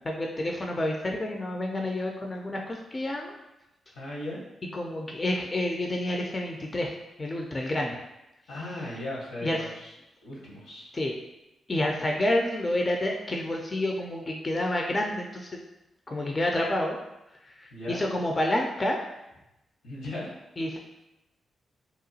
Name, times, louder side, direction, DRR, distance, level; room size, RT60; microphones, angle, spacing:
voice 1, 0.1-3.3 4.7-8.0 9.4-9.7 10.9-11.1 11.7-15.5 16.1-17.0 17.4-19.0 20.6-20.8, left 1 dB, 35° left, 1 dB, 0.4 m, -29 dB
voice 2, 3.9-4.4 8.5-9.9 10.2-10.9 17.7-18.0 19.8-20.3, left 1 dB, 85° left, -4 dB, 0.9 m, -37 dB
2.8 x 2.2 x 2.7 m, 0.92 s
supercardioid pair, 45°, 0 cm